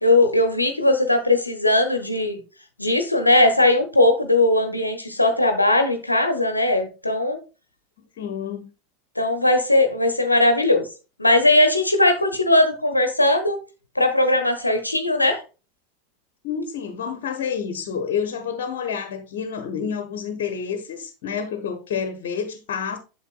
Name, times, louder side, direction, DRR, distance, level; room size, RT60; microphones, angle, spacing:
voice 1, 0.0-2.4 2.8-7.4 9.2-10.9 11.2-13.6 14.0-15.4, left 1 dB, 90° left, 0.8 m, -19 dB
voice 2, 8.2-8.7 16.4-23.0, left 7 dB, 60° left, 0.9 m, -29 dB
8.0 x 6.7 x 2.4 m
figure-of-eight pair, 80°, 0 cm